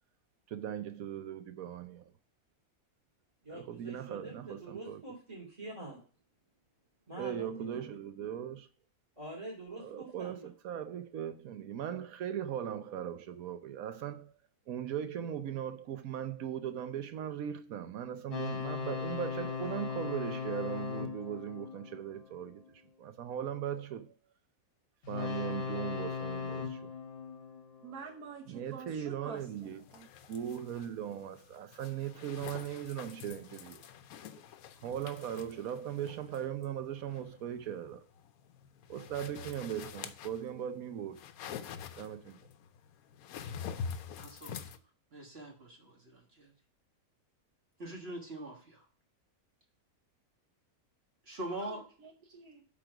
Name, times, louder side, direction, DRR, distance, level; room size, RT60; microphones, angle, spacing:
voice 1, 0.5-2.1 3.5-5.0 7.2-8.7 9.8-14.3 14.7-24.1 25.1-26.9 28.5-29.8 30.3-33.8 34.8-38.0 38.9-41.2 41.5-41.7 42.0-42.4, right 9 dB, 70° right, 1.2 m, -39 dB
voice 2, 3.4-6.0 7.1-7.9 9.2-10.5, right 1 dB, 25° right, 3.2 m, -46 dB
sound 1, 18.3-22.7 25.0-28.3, left 6 dB, 45° left, 1.2 m, -39 dB
voice 3, 27.8-30.1 51.4-52.6, right 5 dB, 90° right, 1.6 m, -48 dB
sound 2, 29.4-44.8, left 7 dB, 75° left, 1.1 m, -46 dB
voice 4, 44.2-44.6 45.1-46.5 47.8-48.8 51.3-51.8, right 1 dB, 45° right, 1.7 m, -43 dB
8.3 x 3.8 x 5.8 m
omnidirectional pair, 1.6 m